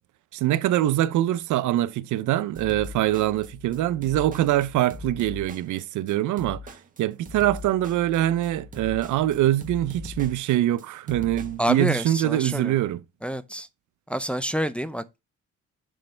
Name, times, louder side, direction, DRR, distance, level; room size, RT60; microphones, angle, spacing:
voice 1, 0.3-13.0, right 13 dB, 75° right, 0.6 m, -24 dB
sound 1, 2.6-11.7, left 3 dB, 25° right, 1.3 m, -41 dB
voice 2, 11.6-12.7 13.2-13.7 14.1-15.2, equal, 5° left, 0.5 m, -28 dB
6.4 x 3.2 x 5.5 m
cardioid pair, 90°, 30 cm